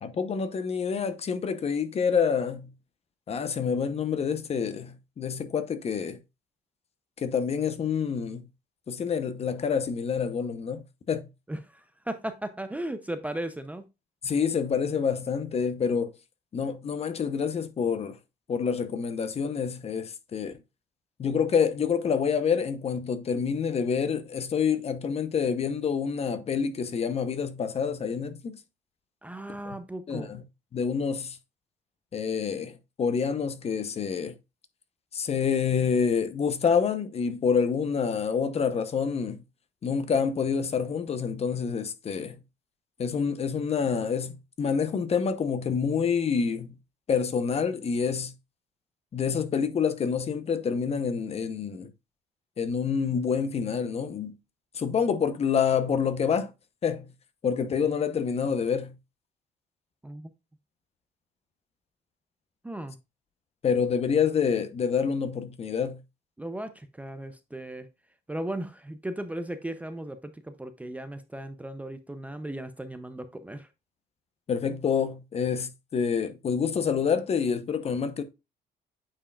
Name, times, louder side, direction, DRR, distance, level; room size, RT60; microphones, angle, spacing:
voice 1, 0.0-2.7 3.3-6.2 7.2-8.4 8.9-11.3 14.2-16.1 16.5-18.2 18.5-20.5 21.2-28.6 29.7-29.8 30.1-30.4 30.7-31.4 32.1-32.7 33.0-34.3 35.1-39.4 39.8-42.4 43.0-46.7 47.1-48.3 49.1-51.9 52.6-54.4 54.8-56.5 56.8-57.1 57.4-58.9 63.6-66.0 74.5-78.2, left 6 dB, 40° left, 0.9 m, -27 dB
voice 2, 11.5-13.8 29.2-30.3 60.0-60.3 62.6-63.0 66.4-67.9 68.3-73.7, right 1 dB, 10° right, 0.5 m, -36 dB
8.7 x 4.7 x 2.4 m
cardioid pair, 110°, 17 cm